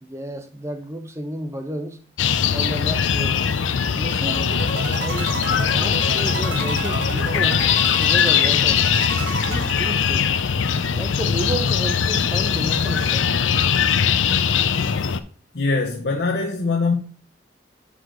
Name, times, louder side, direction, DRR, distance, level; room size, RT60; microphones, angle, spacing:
voice 1, 0.0-2.0 2.5-3.4 3.9-4.5 5.0-7.7 8.0-8.8 9.3-10.3 10.9-13.3, right 1 dB, 15° right, 0.6 m, -32 dB
sound 1, 2.2-15.2, left 7 dB, 90° left, 0.5 m, -21 dB
sound 2, 4.3-10.6, right 3 dB, 70° right, 1.2 m, -31 dB
voice 2, 15.5-16.9, left 3 dB, 60° left, 0.9 m, -22 dB
7.9 x 5.0 x 3.8 m
head